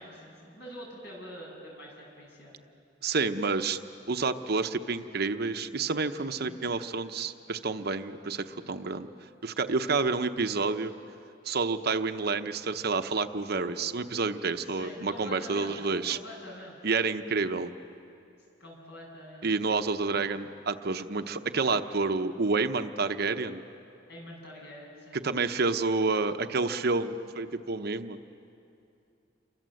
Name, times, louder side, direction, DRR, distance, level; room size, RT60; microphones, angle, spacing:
voice 1, 0.0-2.6 6.4-6.6 14.7-15.8 16.1-16.8 18.6-19.5 20.1-20.2 24.1-25.3, equal, 65° left, -2 dB, 7.9 m, -45 dB
voice 2, 3.0-3.8 4.1-9.1 9.4-10.9 11.4-16.2 16.8-17.7 19.4-23.6 25.1-28.2, right 4 dB, 60° right, 8 dB, 0.9 m, -29 dB
28.5 x 24.0 x 7.8 m, 2.6 s
head